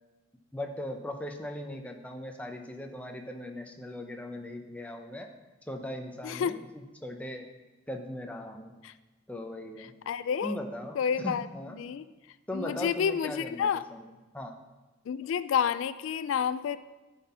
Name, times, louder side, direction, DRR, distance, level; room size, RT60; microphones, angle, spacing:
voice 1, 0.5-5.3 5.7-7.5 7.9-8.7 9.3-9.9 10.4-11.8 12.5-14.1 14.3-14.6, left 1 dB, 5° left, 3 dB, 0.6 m, -39 dB
voice 2, 6.2-6.6 8.8-8.9 10.1-10.6 11.0-11.5 11.8-12.1 12.5-13.9 15.1-16.8, left 7 dB, 80° left, 15 dB, 0.3 m, -29 dB
12.0 x 4.2 x 5.5 m, 1.2 s
head